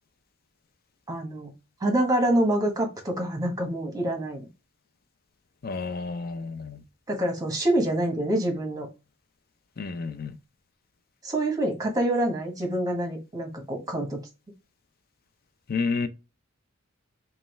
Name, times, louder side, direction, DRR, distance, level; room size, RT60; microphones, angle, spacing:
voice 1, 1.1-1.5 1.8-4.4 7.1-8.9 11.2-14.2, right 1 dB, 20° right, 1.3 m, -26 dB
voice 2, 5.6-6.8 9.8-10.4 15.7-16.1, left 4 dB, 45° left, 0.5 m, -30 dB
5.3 x 2.4 x 3.2 m
head